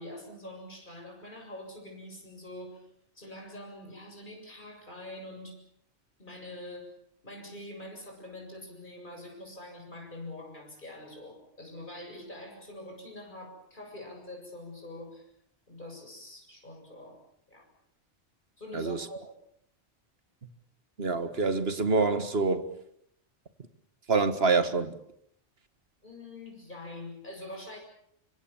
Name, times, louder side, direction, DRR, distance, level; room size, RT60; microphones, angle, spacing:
voice 1, 0.0-2.9 3.1-5.6 6.2-6.9 7.2-15.3 15.7-17.2 17.5-17.7 18.6-19.4 26.0-27.8, left 1 dB, 45° left, 7.7 m, -44 dB
voice 2, 18.7-19.1 21.0-22.7 24.1-24.9, right 4 dB, 60° right, 1.9 m, -26 dB
25.5 x 25.0 x 7.2 m
omnidirectional pair, 1.2 m